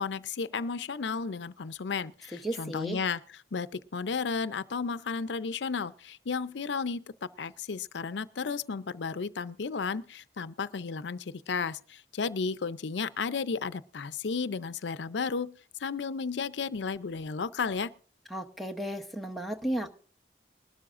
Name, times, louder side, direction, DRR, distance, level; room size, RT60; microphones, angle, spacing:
voice 1, 0.0-3.2 3.5-7.0 7.4-15.5 15.8-17.9, left 5 dB, 80° left, 0.5 m, -33 dB
voice 2, 2.3-3.0 18.3-19.9, right 1 dB, ahead, 0.8 m, -34 dB
20.0 x 12.5 x 2.5 m
head